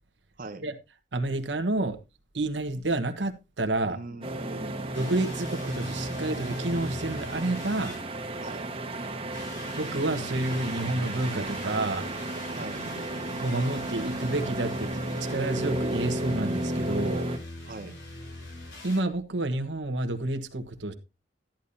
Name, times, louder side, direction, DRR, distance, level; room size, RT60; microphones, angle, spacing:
voice 1, 1.1-2.0 2.3-4.0 5.0-7.9 9.8-12.0 13.4-14.9 15.3-17.3 18.8-20.9, right 2 dB, 85° right, 1.3 m, -29 dB
voice 2, 3.8-5.2 8.4-8.7 12.5-12.8 17.6-18.0, right 2 dB, 50° right, 1.0 m, -41 dB
sound 1, 4.2-17.4, right 1 dB, 30° right, 1.3 m, -33 dB
sound 2, 4.9-8.7 9.3-19.0, left 1 dB, 85° left, 4.6 m, -44 dB
13.0 x 10.5 x 2.7 m
head